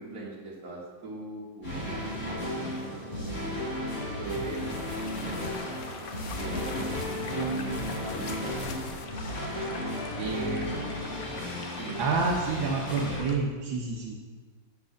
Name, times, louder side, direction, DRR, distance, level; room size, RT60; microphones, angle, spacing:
voice 1, 0.0-3.6 4.2-5.3 6.3-9.0 10.1-10.9 11.8-12.1, right 2 dB, 50° right, -4 dB, 2.3 m, -42 dB
sound 1, 1.6-13.2, left 1 dB, 35° left, 3.4 m, -34 dB
sound 2, 4.3-9.1, left 5 dB, 80° left, 0.6 m, -43 dB
sound 3, 4.5-13.4, left 5 dB, 60° left, 1.1 m, -44 dB
voice 2, 7.2-7.8 10.2-10.8 12.0-14.2, right 4 dB, 80° right, -1 dB, 1.7 m, -30 dB
7.9 x 5.9 x 6.5 m, 1.5 s
omnidirectional pair, 2.1 m